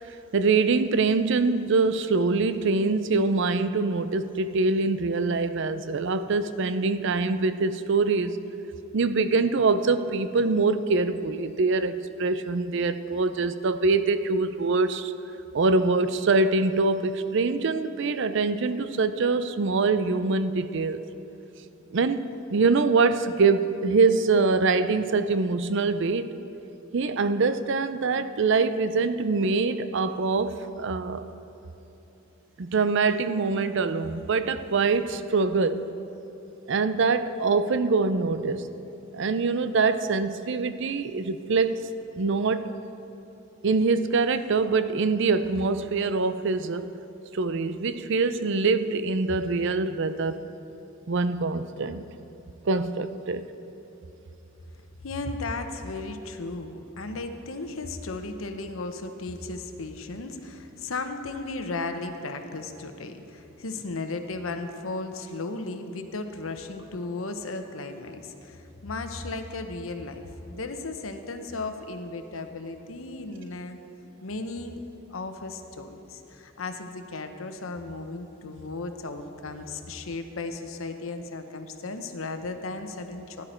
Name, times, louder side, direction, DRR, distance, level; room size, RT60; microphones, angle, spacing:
voice 1, 0.3-8.3 8.9-15.1 15.5-21.0 21.9-22.2 22.5-26.3 26.9-31.2 32.6-35.9 36.7-38.7 39.1-41.8 42.1-42.7 43.6-46.9 47.3-50.4 51.1-52.0 52.7-53.4, right 4 dB, 65° right, 12 dB, 0.5 m, -24 dB
voice 2, 55.0-73.8 74.2-74.8 75.1-83.4, left 3 dB, 85° left, 7 dB, 0.9 m, -35 dB
16.0 x 11.0 x 4.4 m, 3.0 s
head